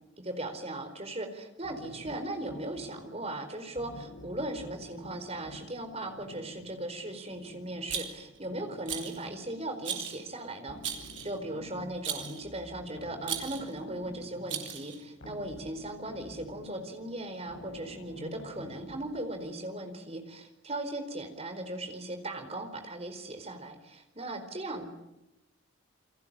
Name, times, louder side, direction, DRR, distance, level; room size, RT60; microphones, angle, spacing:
voice 1, 0.2-24.9, right 1 dB, 30° right, 6 dB, 4.4 m, -38 dB
sound 1, 1.6-19.7, left 1 dB, 75° left, 7.4 m, -50 dB
Rattle, 7.9-8.4 8.9-9.2 9.8-10.2 10.8-11.4 12.0-12.4 13.2-13.7 14.5-15.0, right 8 dB, 60° right, 3.9 m, -36 dB
29.0 x 23.0 x 8.9 m, 0.93 s
head